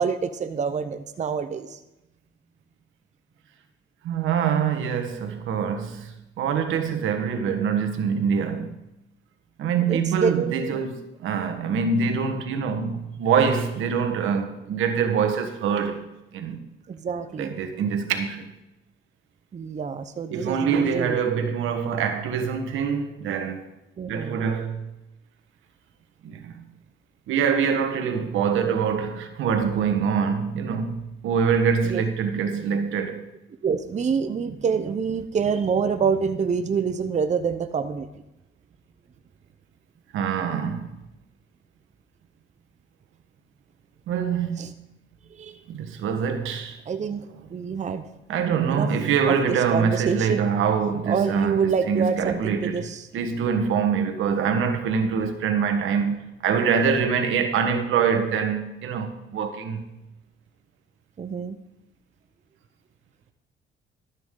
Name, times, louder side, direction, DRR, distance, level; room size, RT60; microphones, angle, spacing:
voice 1, 0.0-1.8 9.9-10.8 16.9-17.6 19.5-21.2 24.0-24.4 31.8-32.0 33.6-38.1 44.6-44.7 45.3-45.6 46.9-47.2 47.5-48.1 48.7-48.9 49.3-50.5 51.1-53.1 61.2-61.6, right 6 dB, 35° right, 0.7 m, -26 dB
voice 2, 4.0-8.7 9.6-16.1 16.3-16.6 17.4-18.5 20.3-23.6 24.1-24.8 26.2-26.6 27.3-33.2 40.1-40.9 44.1-44.6 45.7-46.8 48.3-59.8, right 6 dB, 85° right, 1.4 m, -24 dB
12.5 x 9.8 x 3.8 m
cardioid pair, 90°, 20 cm